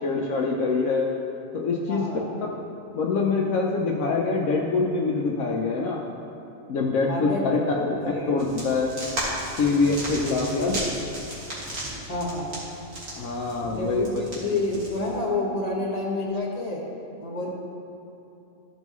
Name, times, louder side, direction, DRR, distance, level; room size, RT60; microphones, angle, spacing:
voice 1, 0.0-1.1 1.5-2.0 2.9-6.0 6.7-7.6 8.3-8.9 9.6-10.9 13.2-14.1, left 4 dB, 80° left, -1 dB, 1.1 m, -24 dB
voice 2, 1.9-2.3 7.1-8.3 10.6-10.9 12.1-12.5 13.7-16.8 17.2-17.5, left 2 dB, 30° left, -3 dB, 1.5 m, -29 dB
sound 1, 8.4-15.2, right 1 dB, 75° right, 2.5 m, -35 dB
14.0 x 5.4 x 3.1 m, 2.8 s
omnidirectional pair, 1.4 m